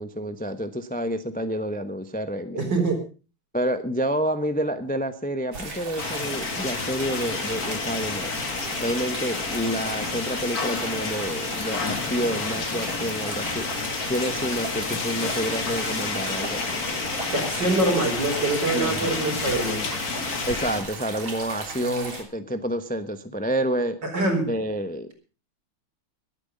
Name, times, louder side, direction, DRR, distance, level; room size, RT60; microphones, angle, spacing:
voice 1, 0.0-2.7 3.5-8.3 8.8-13.7 14.1-16.8 18.7-19.2 20.5-24.0 24.5-25.1, equal, 10° left, 9 dB, 0.6 m, -29 dB
voice 2, 2.5-3.0 17.3-19.8 21.9-22.1 24.1-24.5, right 2 dB, 60° right, 3 dB, 5.1 m, -24 dB
sound 1, 5.5-22.2, right 3 dB, 75° right, 4.2 m, -36 dB
sound 2, 6.0-20.8, left 4 dB, 50° left, 2.3 m, -30 dB
21.0 x 9.0 x 5.4 m, 0.36 s
omnidirectional pair, 2.2 m